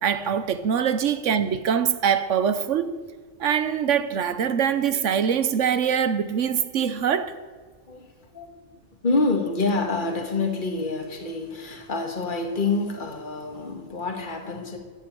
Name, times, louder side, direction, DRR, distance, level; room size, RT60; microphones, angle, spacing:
voice 1, 0.0-2.9 3.4-7.3, right 8 dB, 65° right, 1.1 m, -23 dB
voice 2, 9.0-14.8, left 3 dB, 35° left, 1.8 m, -27 dB
15.0 x 9.3 x 8.6 m
omnidirectional pair, 1.5 m